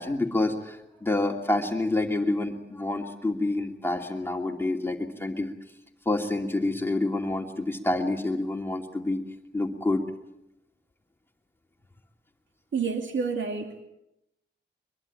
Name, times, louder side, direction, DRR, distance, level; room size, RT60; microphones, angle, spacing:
voice 1, 0.0-5.5 6.0-9.2 9.5-10.0, left 2 dB, 10° left, 2 dB, 2.7 m, -28 dB
voice 2, 12.7-13.8, right 5 dB, 80° right, 4 dB, 2.5 m, -29 dB
24.0 x 22.0 x 8.6 m, 0.84 s
wide cardioid pair, 120°, 19 cm